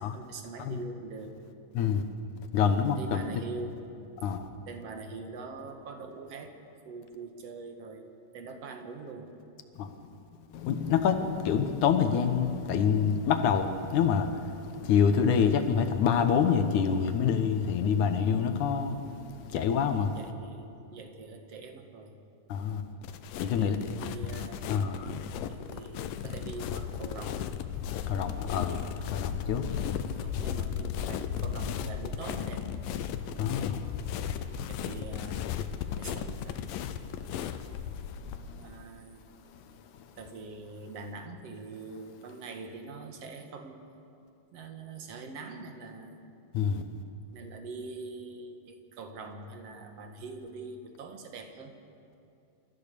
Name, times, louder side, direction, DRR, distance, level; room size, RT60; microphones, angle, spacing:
voice 1, 0.0-1.3 2.9-3.8 4.7-6.5 6.8-8.1 8.3-9.3 20.1-22.1 23.6-24.6 25.5-27.4 30.0-32.6 34.7-35.5 36.0-36.6 38.5-39.2 40.2-43.8 44.5-46.2 47.3-51.7, right 4 dB, 55° right, 5 dB, 2.3 m, -43 dB
voice 2, 2.5-3.3 4.2-4.5 9.8-9.9 10.5-20.2 22.5-22.8 23.4-23.8 24.7-25.1 28.0-30.0 33.2-34.7 37.7-37.8 38.1-38.7 39.5-39.6 46.5-46.9, left 7 dB, 70° left, 8 dB, 2.2 m, -27 dB
sound 1, 23.0-38.4, left 9 dB, 85° left, 2.5 m, -35 dB
28.5 x 14.0 x 6.8 m, 2.6 s
omnidirectional pair, 4.0 m